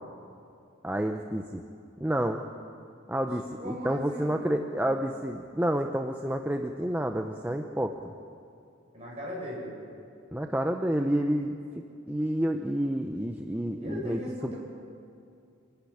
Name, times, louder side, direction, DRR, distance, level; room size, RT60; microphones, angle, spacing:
voice 1, 0.8-1.6 2.0-2.4 3.1-8.1 10.3-11.6 12.1-14.5, right 1 dB, 10° right, 4 dB, 0.7 m, -29 dB
voice 2, 3.6-4.6 8.9-9.7 13.8-14.6, equal, 30° right, -4 dB, 7.5 m, -38 dB
26.5 x 12.0 x 10.0 m, 2.5 s
head